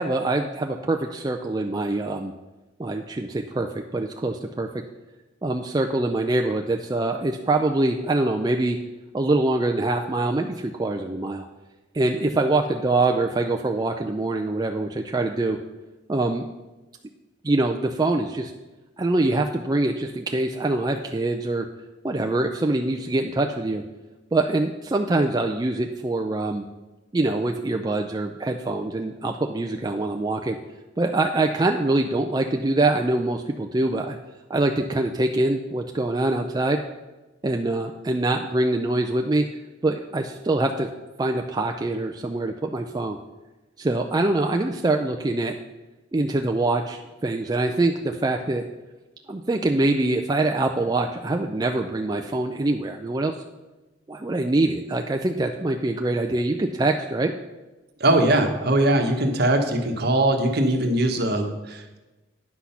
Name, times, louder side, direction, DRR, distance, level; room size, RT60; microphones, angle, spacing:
voice 1, 0.0-2.3 2.8-4.8 5.4-8.8 9.1-11.5 11.9-15.6 16.1-16.5 17.4-18.5 19.0-21.7 22.0-23.8 24.3-26.6 27.1-30.6 31.0-34.2 34.5-36.8 37.4-39.5 39.8-40.9 41.2-43.2 43.8-45.6 46.1-48.6 49.3-53.4 54.1-57.3, right 2 dB, 20° right, 3 dB, 0.4 m, -24 dB
voice 2, 58.0-62.0, right 1 dB, 55° right, 4 dB, 1.2 m, -21 dB
9.7 x 6.1 x 5.7 m, 1.1 s
head